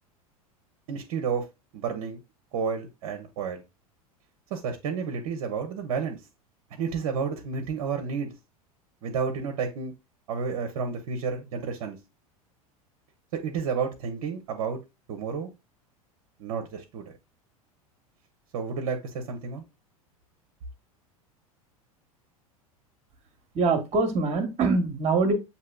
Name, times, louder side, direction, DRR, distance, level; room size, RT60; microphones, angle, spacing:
voice 1, 0.9-1.4 1.7-2.2 2.5-3.6 4.5-6.2 6.8-8.3 9.0-9.9 10.3-12.0 13.4-14.8 15.1-15.5 16.4-17.1 18.5-19.6, right 6 dB, 55° right, 4 dB, 0.8 m, -31 dB
voice 2, 23.5-25.3, right 4 dB, 35° right, 8 dB, 1.1 m, -24 dB
7.5 x 2.9 x 2.3 m, 0.24 s
figure-of-eight pair, 85°, 19 cm